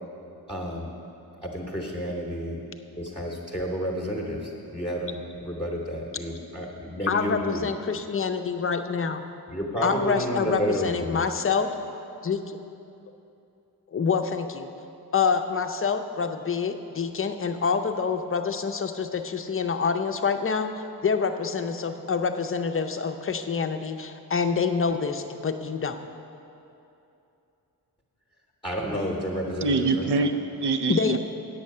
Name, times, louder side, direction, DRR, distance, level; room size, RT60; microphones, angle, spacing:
voice 1, 0.5-0.9 1.4-2.6 3.0-7.7 9.5-11.2 28.6-30.2, equal, 15° left, -2 dB, 0.9 m, -30 dB
voice 2, 7.1-9.2 9.8-11.7 12.2-12.6 13.9-14.7 15.1-20.7 21.0-26.0 30.9-31.2, left 5 dB, 35° left, 7 dB, 0.5 m, -26 dB
voice 3, 29.6-31.2, right 3 dB, 90° right, 8 dB, 0.7 m, -25 dB
8.8 x 8.3 x 6.6 m, 2.8 s
wide cardioid pair, 145°, 39 cm